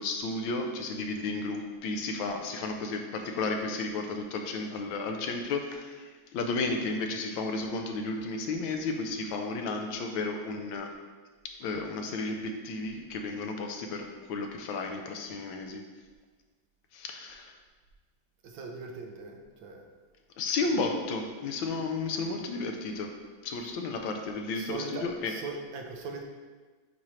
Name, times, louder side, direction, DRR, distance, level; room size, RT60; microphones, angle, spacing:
voice 1, 0.0-10.9 11.4-15.8 16.9-17.5 20.4-23.1 23.4-25.3, left 3 dB, 80° left, 4 dB, 1.5 m, -33 dB
voice 2, 18.4-19.9 24.5-26.2, right 3 dB, 75° right, 2 dB, 1.4 m, -40 dB
8.6 x 4.3 x 3.2 m, 1.4 s
omnidirectional pair, 2.2 m